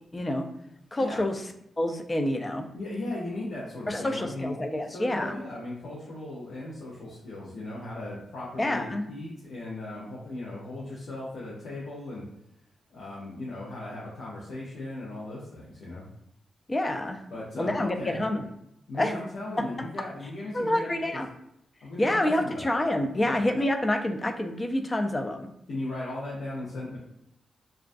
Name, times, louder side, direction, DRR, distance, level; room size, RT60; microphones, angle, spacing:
voice 1, 0.1-0.5 0.9-1.3 1.8-2.7 3.9-5.4 8.6-9.1 16.7-17.2 17.6-18.4 19.0-19.1 20.5-21.3 22.0-25.5, left 1 dB, 25° left, 5 dB, 0.3 m, -27 dB
voice 2, 2.7-4.6 4.9-12.3 12.9-16.0 17.3-18.2 18.9-21.2 21.8-22.7 23.2-23.4 25.7-27.0, left 2 dB, 85° left, -7 dB, 0.6 m, -37 dB
2.3 x 2.1 x 2.5 m, 0.78 s
cardioid pair, 70°, 0 cm